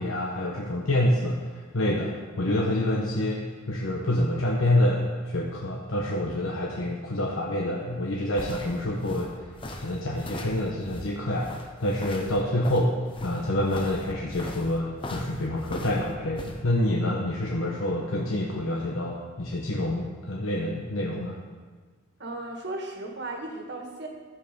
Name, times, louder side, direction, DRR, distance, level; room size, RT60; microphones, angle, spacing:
voice 1, 0.0-9.3 9.8-13.0 13.2-21.4, left 1 dB, 85° left, -2 dB, 1.1 m, -27 dB
sound 1, 7.9-16.6, left 1 dB, 25° left, 0.8 m, -40 dB
voice 2, 22.2-24.1, right 2 dB, 55° right, 2 dB, 1.6 m, -35 dB
12.5 x 7.5 x 5.2 m, 1.5 s
head